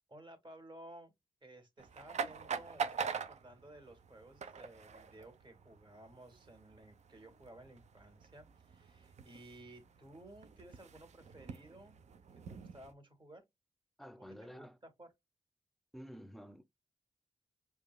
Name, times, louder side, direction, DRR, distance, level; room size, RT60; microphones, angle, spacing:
voice 1, 0.1-1.1 1.4-12.0 12.3-13.4 14.4-15.1, right 1 dB, 40° right, 1.8 m, -56 dB
sound 1, 1.8-12.9, right 6 dB, 70° right, 0.6 m, -45 dB
voice 2, 14.0-14.8 15.9-16.6, equal, ahead, 0.6 m, -50 dB
5.0 x 2.4 x 2.2 m
cardioid pair, 70°, 12 cm